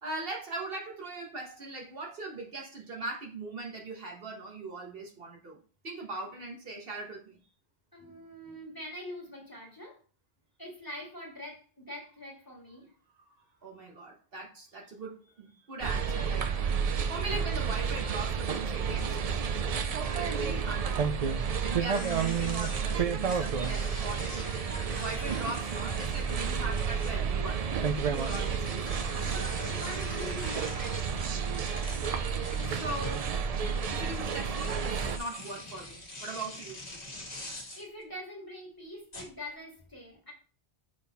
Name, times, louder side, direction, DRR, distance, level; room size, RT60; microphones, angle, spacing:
voice 1, 0.0-5.6 5.8-7.3 13.2-21.3 21.6-24.5 24.8-29.0 32.6-33.4 33.9-36.8, right 2 dB, 65° right, 0 dB, 1.5 m, -40 dB
voice 2, 7.9-10.0 10.6-12.9 28.3-28.6 29.2-31.1 37.4-40.3, left 1 dB, 20° left, -2 dB, 2.1 m, -44 dB
sound 1, 15.8-35.2, right 6 dB, 50° right, 0.5 m, -31 dB
sound 2, 21.8-27.4 28.1-37.9 39.1-39.5, left 1 dB, 40° left, 1.8 m, -44 dB
6.4 x 3.8 x 4.2 m, 0.37 s
omnidirectional pair, 1.0 m